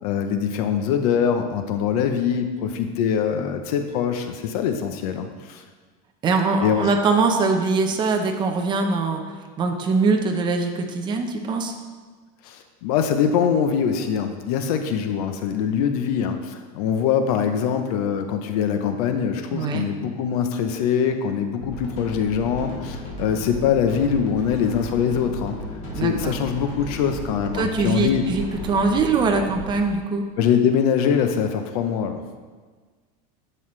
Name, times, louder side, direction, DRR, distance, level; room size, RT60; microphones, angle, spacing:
voice 1, 0.0-5.6 6.6-6.9 12.4-25.6 26.0-28.3 30.4-32.2, left 7 dB, 65° left, 7 dB, 0.8 m, -23 dB
voice 2, 6.2-11.7 19.5-19.8 25.9-26.3 27.6-30.2, right 4 dB, 20° right, 3 dB, 0.8 m, -22 dB
sound 1, 21.6-29.7, left 1 dB, 35° left, 2.8 m, -34 dB
11.0 x 7.8 x 3.3 m, 1.4 s
supercardioid pair, 160°, 20 cm